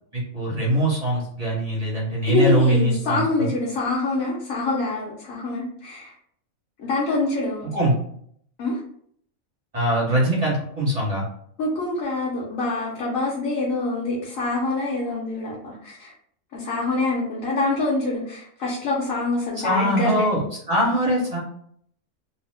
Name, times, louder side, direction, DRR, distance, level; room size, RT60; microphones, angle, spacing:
voice 1, 0.1-3.5 7.7-7.9 9.7-11.2 19.6-20.4 20.7-21.4, right 1 dB, 35° right, -5 dB, 0.9 m, -22 dB
voice 2, 2.3-6.1 6.8-7.7 8.6-8.8 11.6-16.1 16.5-20.3, left 2 dB, 75° left, -6 dB, 1.1 m, -25 dB
2.8 x 2.0 x 3.3 m, 0.65 s
omnidirectional pair, 1.4 m